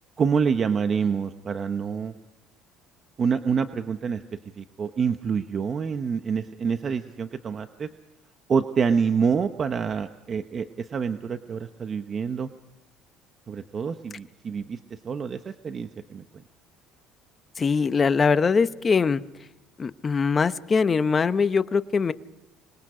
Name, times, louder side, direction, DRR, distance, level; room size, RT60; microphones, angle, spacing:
voice 1, 0.2-2.1 3.2-4.2 4.6-7.9 8.5-12.5 13.5-16.2, right 6 dB, 40° right, 8 dB, 1.0 m, -27 dB
voice 2, 17.6-19.2 19.8-22.1, left 5 dB, 30° left, 12 dB, 0.9 m, -22 dB
27.0 x 21.5 x 5.0 m, 0.95 s
supercardioid pair, 95°, 0 cm